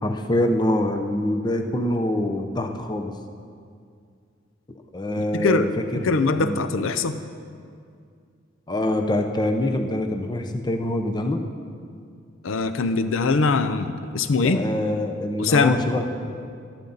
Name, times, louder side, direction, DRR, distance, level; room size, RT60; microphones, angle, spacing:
voice 1, 0.0-3.1 4.9-5.7 5.9-6.6 8.7-11.4 14.4-16.5, left 1 dB, 20° left, 6 dB, 0.6 m, -25 dB
voice 2, 5.3-5.7 6.0-7.2 12.4-14.6 15.4-15.8, left 4 dB, 85° left, 11 dB, 0.6 m, -22 dB
14.0 x 12.0 x 4.0 m, 2.3 s
head